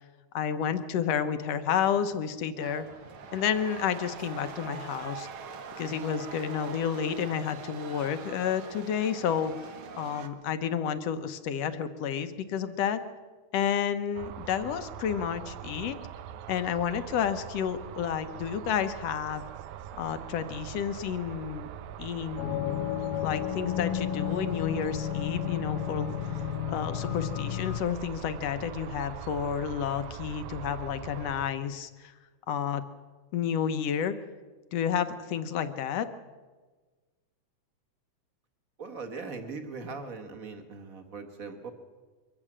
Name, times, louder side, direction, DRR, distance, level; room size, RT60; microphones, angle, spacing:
voice 1, 0.3-2.9 3.3-5.3 5.8-9.6 10.0-13.0 13.5-16.0 16.5-19.4 20.0-21.7 22.0-22.9 23.2-26.4 26.7-32.1 32.5-32.8 33.3-34.2 34.7-36.1, left 8 dB, 70° left, 11 dB, 1.7 m, -30 dB
sound 1, 2.6-10.3, right 6 dB, 55° right, 1.6 m, -43 dB
sound 2, 14.1-31.5, right 9 dB, 85° right, 2.3 m, -42 dB
sound 3, 22.4-27.8, left 11 dB, 85° left, 2.2 m, -32 dB
voice 2, 38.8-41.7, right 4 dB, 35° right, 5 dB, 1.6 m, -40 dB
23.5 x 15.0 x 7.5 m, 1.4 s
omnidirectional pair, 3.5 m